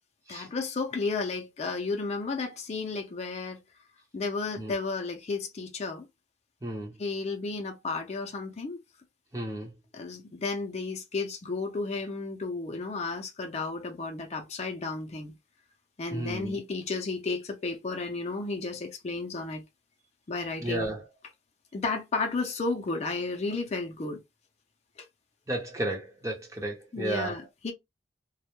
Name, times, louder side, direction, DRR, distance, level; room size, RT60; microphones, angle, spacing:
voice 1, 0.3-3.6 4.1-6.1 7.0-8.8 9.9-15.3 16.0-19.6 20.3-20.9 21.7-24.2 25.0-25.1 26.9-27.7, left 3 dB, 35° left, 0.4 m, -33 dB
voice 2, 6.6-6.9 9.3-9.7 16.1-16.6 20.6-21.0 25.5-27.4, right 1 dB, 15° right, 0.6 m, -33 dB
2.1 x 2.0 x 2.9 m
head